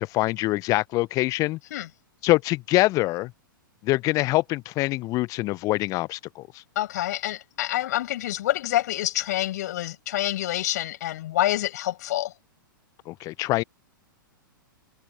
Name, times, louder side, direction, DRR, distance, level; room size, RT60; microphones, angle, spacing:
voice 1, 0.0-1.6 2.2-3.3 3.8-6.6 13.1-13.6, left 19 dB, 30° left, 0.8 m, -24 dB
voice 2, 6.8-12.3, left 14 dB, 50° left, 5.5 m, -27 dB
figure-of-eight pair, 105°, 11 cm